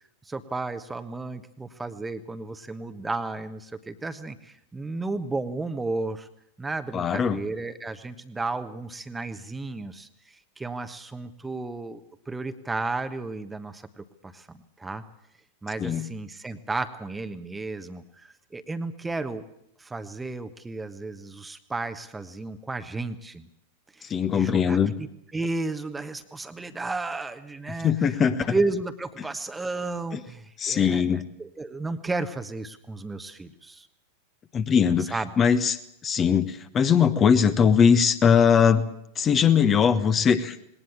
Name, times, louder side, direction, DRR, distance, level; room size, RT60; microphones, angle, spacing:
voice 1, 0.3-6.3 6.6-12.0 12.3-15.0 15.6-19.4 19.8-23.5 23.9-27.9 28.5-33.9 35.1-35.3, right 3 dB, 10° right, 10 dB, 1.2 m, -33 dB
voice 2, 6.9-7.4 15.8-16.1 24.1-24.9 27.8-28.5 30.1-30.2 30.6-31.2 34.5-38.8 39.2-40.5, left 7 dB, 25° left, 11 dB, 1.3 m, -21 dB
20.5 x 18.5 x 8.6 m, 0.76 s
figure-of-eight pair, 90°, 0 cm